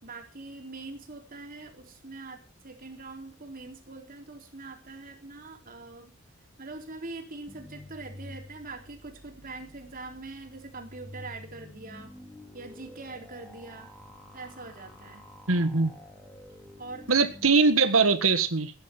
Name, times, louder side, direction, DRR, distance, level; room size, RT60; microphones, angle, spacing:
voice 1, 0.0-6.1 6.6-12.1 12.5-13.9 14.3-15.2 16.8-17.3, right 3 dB, 45° right, 3 dB, 3.8 m, -43 dB
sound 1, 7.5-17.5, left 1 dB, 5° left, 3.5 m, -49 dB
voice 2, 15.5-15.9 17.1-18.7, right 4 dB, 85° right, 10 dB, 1.7 m, -22 dB
16.5 x 10.5 x 6.0 m, 0.36 s
head